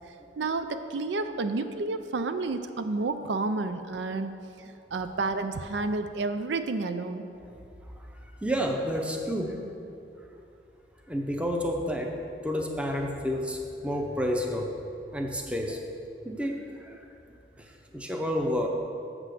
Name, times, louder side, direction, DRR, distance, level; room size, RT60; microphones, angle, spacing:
voice 1, 0.4-4.3 4.6-7.2, right 3 dB, 80° right, 9 dB, 0.5 m, -30 dB
voice 2, 8.4-9.6 10.3-10.4 11.1-12.2 12.4-14.8 15.1-15.8 16.2-17.0 17.6-18.7, equal, 5° right, 2 dB, 0.6 m, -30 dB
7.5 x 6.1 x 6.6 m, 2.6 s
head